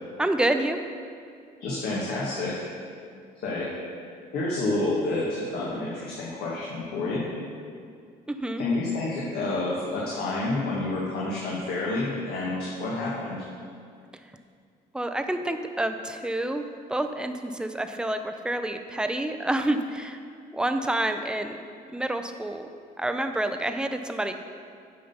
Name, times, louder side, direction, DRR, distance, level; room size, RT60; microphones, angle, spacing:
voice 1, 0.2-0.8 8.3-8.6 14.9-16.6 16.9-20.2 20.5-21.6 21.9-22.7 23.0-24.3, right 1 dB, 5° right, 7 dB, 0.5 m, -28 dB
voice 2, 1.6-2.6 3.3-3.7 4.3-7.3 8.6-13.4, left 2 dB, 70° left, -6 dB, 1.7 m, -29 dB
8.6 x 5.6 x 5.6 m, 2.2 s
cardioid pair, 110°, 17 cm